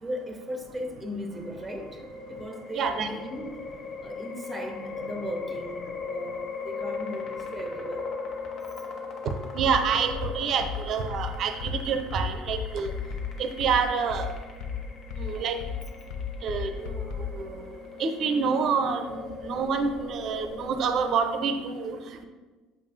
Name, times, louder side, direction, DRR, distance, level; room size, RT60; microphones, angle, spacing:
voice 1, 0.0-2.0 2.3-3.7 4.0-8.1, equal, 10° right, 5 dB, 0.8 m, -37 dB
sound 1, 1.3-21.1, left 4 dB, 45° left, 1.0 m, -39 dB
voice 2, 2.8-3.1 9.5-12.9 13.4-14.3 15.2-15.6 16.4-16.9 17.3-17.5 18.0-19.2 19.4-22.0, right 6 dB, 50° right, 8 dB, 0.6 m, -27 dB
sound 2, 9.6-17.4, left 7 dB, 60° left, 0.4 m, -34 dB
7.2 x 5.3 x 2.6 m, 1.3 s
figure-of-eight pair, 60°, 0 cm